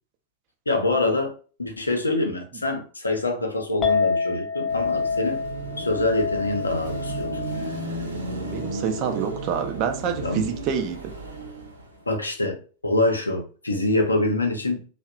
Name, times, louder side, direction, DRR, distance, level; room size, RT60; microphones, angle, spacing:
voice 1, 0.7-1.3 1.6-5.4 5.8-7.4 10.2-10.5 12.1-14.9, left 2 dB, 80° left, 0.5 m, -25 dB
Chink clink, 3.8-10.1, left 5 dB, 15° left, 0.5 m, -29 dB
Car passing by / Traffic noise roadway noise / Engine, 4.7-12.0, right 2 dB, 70° right, 0.7 m, -34 dB
voice 2, 8.5-11.1, right 7 dB, 40° right, 0.4 m, -27 dB
2.6 x 2.0 x 2.3 m
figure-of-eight pair, 90°, 0 cm